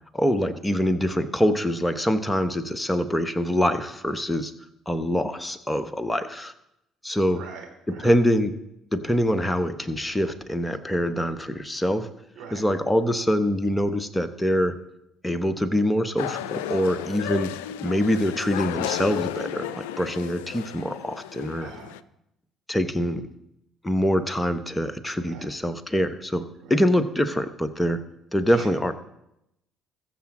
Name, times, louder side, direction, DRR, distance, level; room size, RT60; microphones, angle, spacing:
voice 1, 0.1-4.5 4.9-6.5 7.0-7.4 7.9-8.6 8.9-12.1 12.5-14.8 15.2-17.5 17.8-21.7 22.7-23.3 23.8-28.0 28.3-28.9, equal, 10° left, 9 dB, 1.2 m, -24 dB
voice 2, 7.3-8.1 12.4-12.6 21.6-21.9 25.2-25.5 26.6-26.8 28.5-28.7, right 6 dB, 55° right, 1 dB, 3.7 m, -43 dB
sound 1, 16.2-22.0, left 12 dB, 75° left, 0.3 m, -33 dB
21.0 x 7.3 x 3.9 m, 0.83 s
figure-of-eight pair, 50°, 0 cm